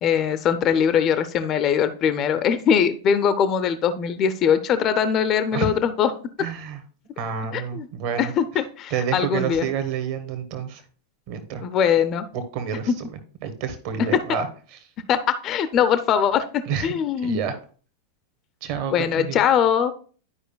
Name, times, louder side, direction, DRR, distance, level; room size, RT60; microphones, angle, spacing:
voice 1, 0.0-6.1 7.5-7.9 8.2-9.7 11.6-12.3 12.9-13.0 14.1-14.2 15.1-17.4 18.9-19.9, left 8 dB, 35° left, 11 dB, 0.5 m, -21 dB
voice 2, 6.4-6.8 7.2-8.3 8.9-10.8 11.3-11.6 12.3-13.1 13.4-14.5 16.7-16.9 17.2-17.5 18.6-19.4, right 7 dB, 45° right, 9 dB, 1.2 m, -28 dB
11.0 x 4.9 x 2.3 m, 0.41 s
figure-of-eight pair, 90°, 0 cm